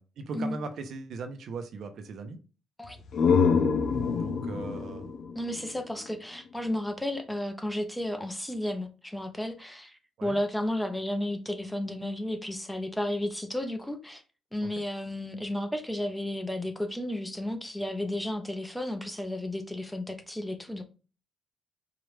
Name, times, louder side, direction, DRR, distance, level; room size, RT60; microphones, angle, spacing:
voice 1, 0.0-2.4 4.2-5.1 10.2-10.4 14.6-14.7, right 4 dB, 65° right, 0.8 m, -39 dB
sound 1, 2.8-6.5, left 5 dB, 60° left, 0.6 m, -27 dB
voice 2, 5.4-14.2 14.5-20.8, left 1 dB, 5° left, 0.8 m, -33 dB
4.8 x 2.5 x 3.3 m
cardioid pair, 90°, 0 cm